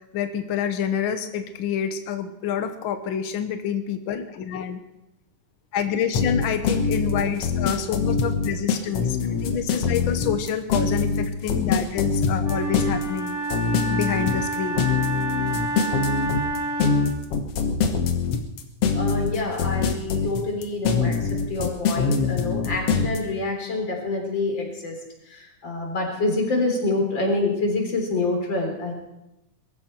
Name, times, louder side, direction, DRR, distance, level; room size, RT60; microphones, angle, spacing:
voice 1, 0.0-4.8 5.7-13.4 13.9-14.9, left 8 dB, 75° left, 8 dB, 1.1 m, -27 dB
sound 1, 6.1-23.2, left 5 dB, 55° left, 2.0 m, -23 dB
Wind instrument woodwind instrument, 12.4-17.2, right 2 dB, 45° right, 5.8 m, -29 dB
voice 2, 18.9-25.0 25.3-28.9, left 2 dB, 35° left, 1 dB, 4.1 m, -26 dB
22.0 x 14.0 x 4.4 m, 0.91 s
omnidirectional pair, 3.6 m